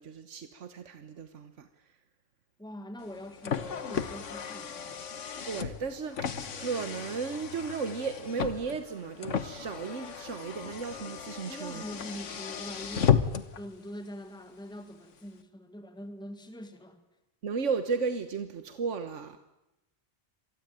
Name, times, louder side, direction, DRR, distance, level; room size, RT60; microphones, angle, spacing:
voice 1, 0.0-1.7 5.5-11.8 17.4-19.4, right 5 dB, 85° right, 10 dB, 1.5 m, -34 dB
voice 2, 2.6-5.0 11.5-17.0, equal, 5° left, 7 dB, 2.1 m, -44 dB
Car, 3.0-13.6, left 8 dB, 85° left, 1.6 m, -34 dB
26.5 x 19.5 x 9.1 m, 0.89 s
omnidirectional pair, 1.2 m